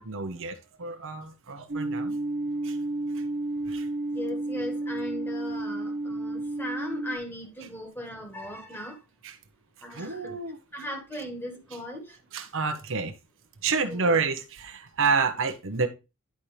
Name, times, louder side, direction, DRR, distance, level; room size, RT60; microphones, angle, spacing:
voice 1, 0.0-2.2 2.6-2.8 3.7-3.9 9.2-9.3 9.9-10.6 12.3-13.1 13.6-15.9, right 4 dB, 60° right, 1.0 m, -29 dB
sound 1, 1.7-7.2, right 2 dB, 40° right, 0.7 m, -31 dB
voice 2, 4.1-9.0 9.8-10.4 10.7-12.2 13.9-14.2, left 1 dB, 10° left, 1.5 m, -38 dB
10.5 x 4.3 x 3.3 m
head